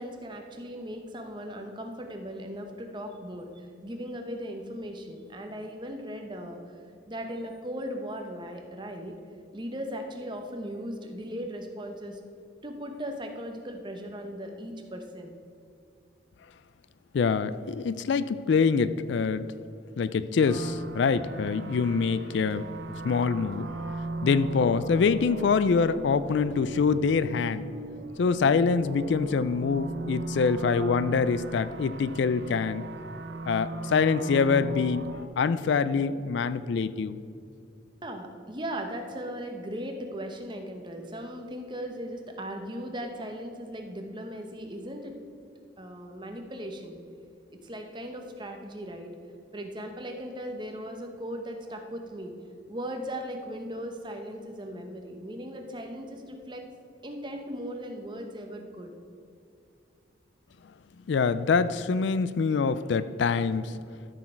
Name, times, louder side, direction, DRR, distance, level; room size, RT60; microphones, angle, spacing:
voice 1, 0.0-6.6 7.1-9.1 9.5-12.2 12.6-15.3 38.0-45.1 45.8-47.0 47.6-49.1 49.5-52.3 52.7-56.6 57.0-58.9, equal, 25° right, 4 dB, 0.9 m, -38 dB
voice 2, 17.1-19.4 20.0-22.7 23.0-23.7 24.2-27.7 28.2-32.9 33.5-35.1 35.4-37.2 61.1-63.7, left 5 dB, 65° left, 14 dB, 0.3 m, -25 dB
sound 1, 20.4-35.3, right 2 dB, 60° right, 0.6 m, -38 dB
13.5 x 6.3 x 4.5 m, 2.5 s
head